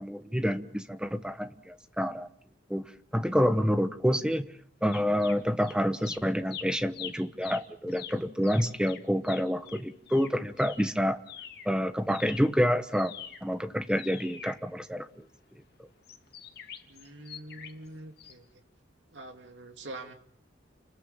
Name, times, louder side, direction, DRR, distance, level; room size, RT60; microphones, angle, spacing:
voice 1, 0.0-2.3 2.7-2.8 3.1-4.5 4.8-11.2 11.6-13.1 13.4-15.1, equal, 5° right, 9 dB, 1.1 m, -28 dB
sound 1, 4.9-5.8 6.0-11.7 12.0-15.3 16.0-17.9 18.2-18.3, left 9 dB, 55° left, 2.4 m, -45 dB
voice 2, 16.9-18.4 19.1-20.1, right 2 dB, 75° right, 4 dB, 2.8 m, -44 dB
29.5 x 19.5 x 7.5 m, 0.66 s
head